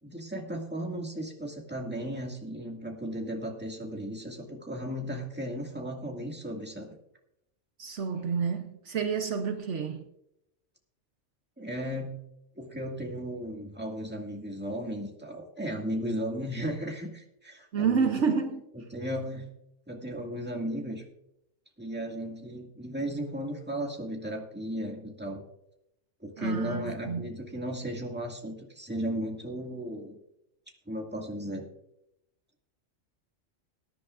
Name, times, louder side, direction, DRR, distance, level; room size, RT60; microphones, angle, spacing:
voice 1, 0.0-6.9 11.6-12.2 12.6-18.2 18.7-19.5 19.9-21.0 21.8-25.4 26.2-30.2 30.9-31.7, equal, 10° right, 2.0 m, -35 dB
voice 2, 7.8-10.1 17.7-18.6 26.4-27.3, right 6 dB, 65° right, 1.1 m, -29 dB
20.5 x 10.0 x 2.5 m
omnidirectional pair, 1.3 m